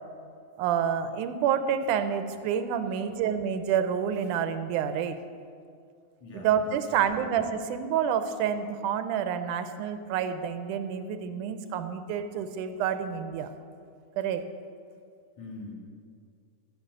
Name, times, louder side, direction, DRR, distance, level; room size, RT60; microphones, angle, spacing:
voice 1, 0.6-5.2 6.3-13.5 14.2-14.5, right 8 dB, 85° right, 10 dB, 2.2 m, -28 dB
voice 2, 6.2-7.3 15.4-15.7, left 2 dB, 60° left, -2 dB, 3.1 m, -44 dB
13.0 x 6.8 x 7.7 m, 2.3 s
omnidirectional pair, 3.5 m